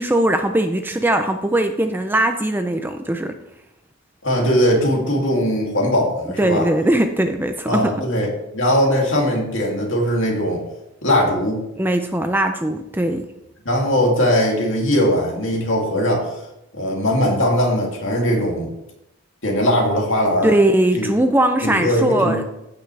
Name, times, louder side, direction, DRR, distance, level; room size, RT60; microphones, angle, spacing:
voice 1, 0.0-3.3 6.4-8.0 11.8-13.2 20.4-22.4, right 1 dB, 10° right, 6 dB, 0.4 m, -20 dB
voice 2, 4.2-6.6 7.7-10.6 11.0-11.6 13.6-16.3 16.7-18.7 19.4-20.5 20.9-21.1 21.6-22.3, equal, 60° left, -1 dB, 2.5 m, -20 dB
14.5 x 6.0 x 3.3 m, 0.87 s
head